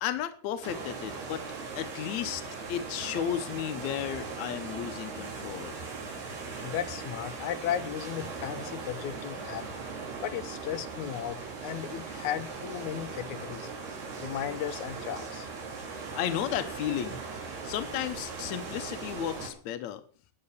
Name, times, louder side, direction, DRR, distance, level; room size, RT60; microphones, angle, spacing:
voice 1, 0.0-1.5 1.8-2.4 2.7-5.8 16.1-20.0, left 10 dB, 85° left, 9 dB, 1.6 m, -34 dB
sound 1, 0.6-19.5, right 4 dB, 75° right, 5.3 m, -39 dB
voice 2, 6.6-9.7 10.2-13.7 14.2-15.5, left 10 dB, 65° left, 7 dB, 2.0 m, -35 dB
13.0 x 9.3 x 6.8 m, 0.41 s
omnidirectional pair, 4.7 m